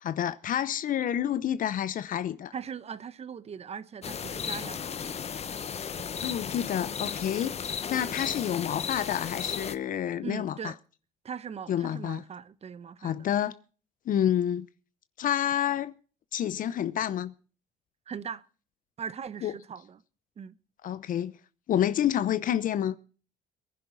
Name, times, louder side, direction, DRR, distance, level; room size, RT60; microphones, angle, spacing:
voice 1, 0.0-2.5 6.2-10.7 11.7-12.2 13.0-13.6 14.1-14.7 15.2-15.9 16.3-17.3 19.4-19.5 20.8-21.4 21.7-23.0, left 10 dB, 55° left, 0.7 m, -29 dB
voice 2, 2.5-5.0 10.2-10.8 11.2-13.3 18.1-18.4 19.0-20.0 20.4-20.5, right 7 dB, 40° right, 1.0 m, -40 dB
sound 1, 4.0-9.7, left 7 dB, 40° left, 1.2 m, -35 dB
22.5 x 10.5 x 4.0 m
cardioid pair, 110°, 17 cm